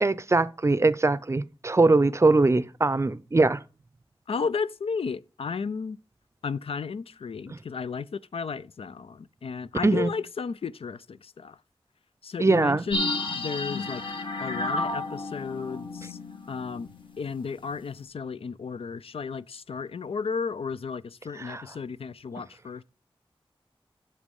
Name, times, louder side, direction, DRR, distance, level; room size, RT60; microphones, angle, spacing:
voice 1, 0.0-3.6 7.5-7.6 9.8-10.1 12.4-12.9 21.4-21.6, right 3 dB, 30° right, 0.5 m, -22 dB
voice 2, 4.3-6.0 6.4-11.6 12.2-14.0 14.4-16.2 16.5-16.9 17.2-22.8, left 5 dB, 75° left, 0.4 m, -33 dB
sound 1, 12.9-17.3 17.6-17.7, left 2 dB, 60° left, 1.6 m, -32 dB
8.3 x 7.2 x 5.3 m
wide cardioid pair, 95°, 10 cm